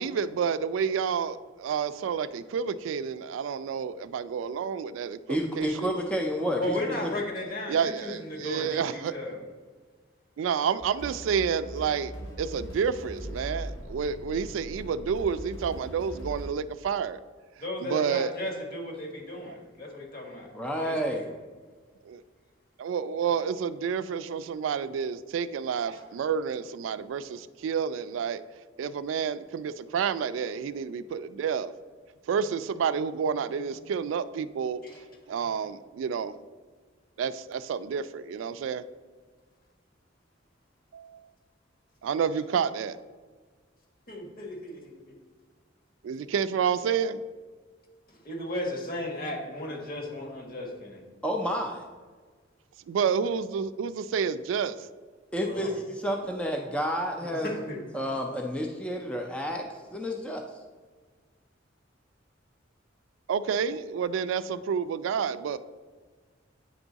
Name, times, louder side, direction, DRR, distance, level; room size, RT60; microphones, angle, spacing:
voice 1, 0.0-5.9 7.7-9.1 10.4-12.1 12.4-17.2 17.8-18.3 22.1-22.2 22.8-28.4 28.8-31.7 32.3-34.8 35.3-36.4 37.2-38.8 40.9-41.3 42.0-43.0 46.0-47.2 52.9-54.9 63.3-65.6, right 7 dB, 75° right, 14 dB, 0.3 m, -29 dB
voice 2, 5.3-6.8 7.0-7.1 20.5-21.3 51.2-51.8 55.3-57.5 57.9-60.5, equal, 5° left, 2 dB, 0.4 m, -30 dB
voice 3, 6.4-9.4 17.6-20.5 20.8-21.2 25.9-26.0 34.8-35.0 44.1-45.1 48.1-51.0 55.4-55.7 57.4-57.8, left 1 dB, 50° left, 0 dB, 1.5 m, -35 dB
sound 1, 10.8-16.5, right 1 dB, 70° left, 1.6 m, -40 dB
8.9 x 3.6 x 3.9 m, 1.5 s
head